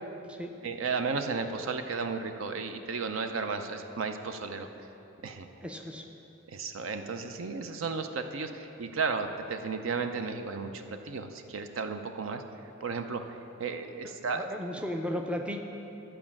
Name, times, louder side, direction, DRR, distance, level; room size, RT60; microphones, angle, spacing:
voice 1, 0.6-4.7 5.2-5.5 6.5-12.4 12.8-14.5, right 4 dB, 65° right, 7 dB, 0.5 m, -34 dB
voice 2, 5.6-6.0 14.0-15.6, equal, 5° right, 3 dB, 0.5 m, -35 dB
11.0 x 5.0 x 7.2 m, 3.0 s
head